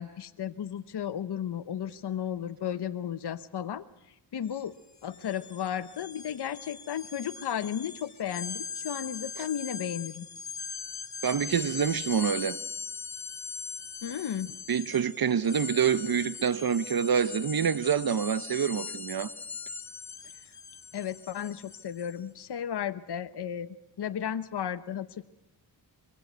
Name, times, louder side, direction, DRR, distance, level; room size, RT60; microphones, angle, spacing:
voice 1, 0.0-4.7 5.0-10.3 14.0-14.5 20.2-20.3 20.9-25.2, left 9 dB, 75° left, 0.9 m, -34 dB
sound 1, 4.5-4.6 4.9-22.2, left 5 dB, 45° left, 1.5 m, -41 dB
voice 2, 11.2-12.6 14.7-19.3, right 7 dB, 60° right, 0.9 m, -27 dB
24.5 x 23.0 x 8.0 m
wide cardioid pair, 85°, 41 cm